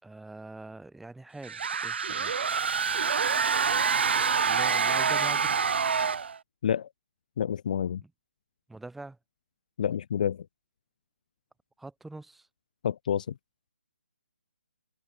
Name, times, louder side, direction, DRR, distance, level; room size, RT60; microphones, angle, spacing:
voice 1, 0.0-2.4 4.4-5.6 8.0-8.1 8.7-9.2 11.8-12.5, right 2 dB, ahead, 6.0 m, -44 dB
sound 1, 1.4-6.4, right 6 dB, 55° right, 2.0 m, -26 dB
voice 2, 7.4-8.0 9.8-10.5 12.8-13.3, left 8 dB, 40° left, 2.3 m, -28 dB
hypercardioid pair, 165°, 7 cm